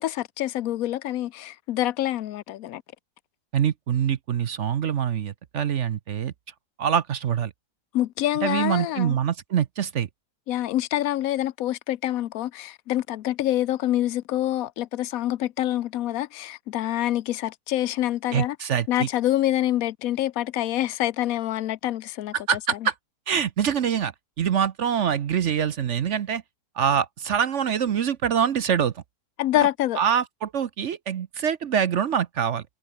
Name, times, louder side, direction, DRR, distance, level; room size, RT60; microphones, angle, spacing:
voice 1, 0.0-2.8 7.9-9.2 10.5-18.6 18.9-22.3 22.7-22.9 29.4-30.0, left 13 dB, 65° left, 1.0 m, -26 dB
voice 2, 3.5-6.3 6.8-7.5 8.4-10.1 18.3-19.1 22.3-22.9 23.3-26.4 26.8-29.0 30.0-32.6, right 8 dB, 55° right, 1.0 m, -25 dB
omnidirectional pair, 1.7 m